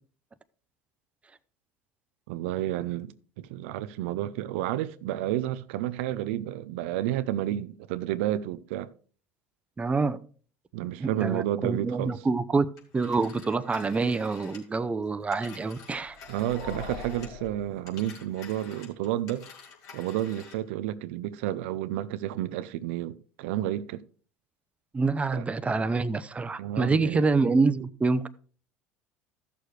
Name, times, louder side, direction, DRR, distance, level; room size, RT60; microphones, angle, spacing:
voice 1, 2.3-8.9 10.7-12.2 16.3-19.4 19.9-24.0 25.3-25.4 26.6-27.2, right 13 dB, 75° right, 0.5 m, -31 dB
voice 2, 9.8-10.2 11.0-12.7 12.9-16.2 24.9-28.3, right 4 dB, 20° right, 0.6 m, -26 dB
Telephone, 12.8-17.5 17.8-20.7, left 6 dB, 60° left, 3.1 m, -50 dB
sound 1, 15.8-18.4, left 3 dB, 90° left, 4.2 m, -43 dB
14.0 x 6.7 x 3.3 m
hypercardioid pair, 80°, 6 cm